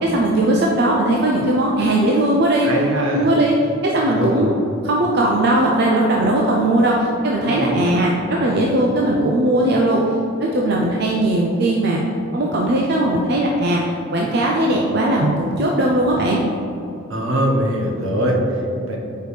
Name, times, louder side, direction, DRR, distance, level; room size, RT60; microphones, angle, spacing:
voice 1, 0.0-2.7 3.1-3.5 3.8-10.0 10.4-12.0 12.3-13.8 14.1-16.4, right 1 dB, 50° right, -2 dB, 0.5 m, -18 dB
voice 2, 2.6-3.3 4.1-4.5 7.5-8.0 17.1-19.0, right 1 dB, 70° right, 0 dB, 1.0 m, -22 dB
5.1 x 4.6 x 4.8 m, 2.7 s
head